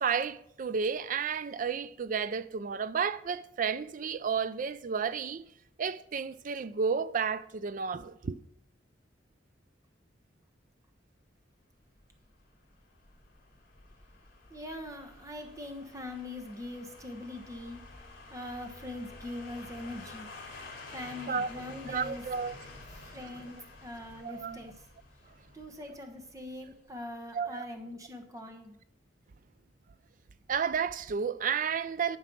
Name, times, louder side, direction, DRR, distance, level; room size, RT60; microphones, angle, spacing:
voice 1, 0.0-5.4 5.8-8.4 21.3-21.5 21.9-22.6 24.2-24.6 27.3-27.6 30.5-32.2, right 6 dB, 45° right, 0.4 m, -32 dB
sound 1, 12.0-26.9 27.2-27.3, left 2 dB, 55° left, 2.4 m, -50 dB
voice 2, 14.5-17.9 18.3-20.3 20.9-22.2 22.9-24.8 25.5-28.8, left 1 dB, 20° right, 1.1 m, -42 dB
11.5 x 4.7 x 6.1 m
head